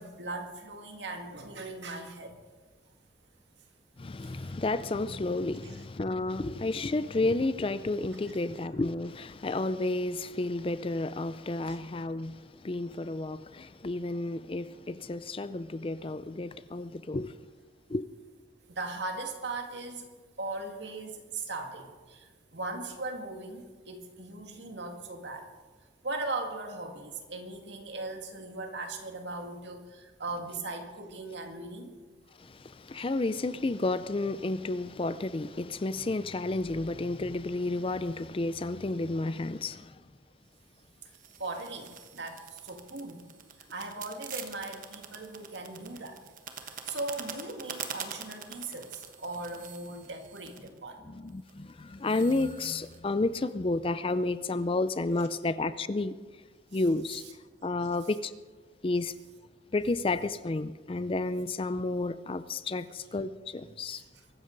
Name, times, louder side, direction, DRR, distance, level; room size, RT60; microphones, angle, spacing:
voice 1, 0.0-2.3 4.2-4.6 11.7-11.8 18.7-20.1 20.4-25.5 26.0-32.0 41.4-43.3 43.7-46.2 46.6-51.1 57.1-57.2 63.9-64.1, right 2 dB, 75° right, 2.1 m, -39 dB
voice 2, 4.0-17.4 17.9-18.0 32.4-40.0 51.1-56.2 56.7-57.2 57.6-58.3 58.8-59.1 59.7-64.0, left 2 dB, 30° left, 0.4 m, -31 dB
sound 1, 41.1-50.8 51.3-51.7 52.1-53.0, right 7 dB, 45° right, 1.2 m, -45 dB
23.0 x 13.0 x 4.0 m
head